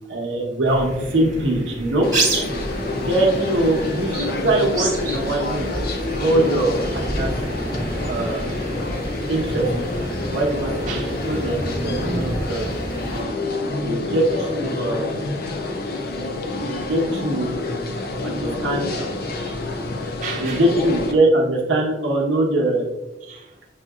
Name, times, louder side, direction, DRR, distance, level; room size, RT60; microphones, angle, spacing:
voice 1, 0.1-2.1 2.9-5.8 6.2-7.3 8.1-8.5 9.3-9.6 10.3-12.8 13.8-15.2 16.5-17.6 18.2-19.2 20.4-22.8, right 1 dB, 90° right, -1 dB, 0.9 m, -22 dB
sound 1, 0.7-13.2, right 1 dB, 20° right, 1.2 m, -29 dB
sound 2, 2.0-21.1, left 2 dB, 55° left, 0.5 m, -28 dB
voice 2, 10.8-11.5 13.1-13.6 14.0-14.2 14.8-14.9 19.3-19.6 20.2-20.7 23.2-23.7, right 4 dB, 45° right, -2 dB, 0.4 m, -36 dB
5.9 x 2.8 x 2.3 m, 1.0 s
head